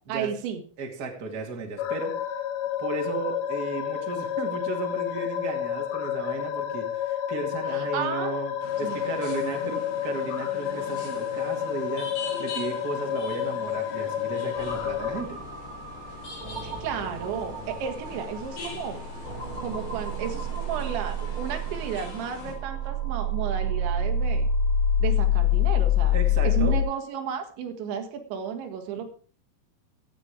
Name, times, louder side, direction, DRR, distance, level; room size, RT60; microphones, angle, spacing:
voice 1, 0.1-0.6 7.7-8.3 8.8-9.1 9.5-9.8 16.6-19.0 19.6-24.5 25.0-26.2 26.4-29.1, right 7 dB, 90° right, 5 dB, 4.0 m, -33 dB
voice 2, 0.8-2.2 2.8-8.5 8.8-15.4 26.1-26.7 28.9-29.0, right 3 dB, 30° right, 2 dB, 2.1 m, -34 dB
sound 1, 1.8-15.2, left 10 dB, 80° left, 3.4 m, -30 dB
sound 2, 8.6-22.5, left 3 dB, 50° left, 4.8 m, -43 dB
sound 3, 14.5-26.8, left 4 dB, 10° left, 3.5 m, -27 dB
15.5 x 8.9 x 4.9 m, 0.42 s
omnidirectional pair, 5.1 m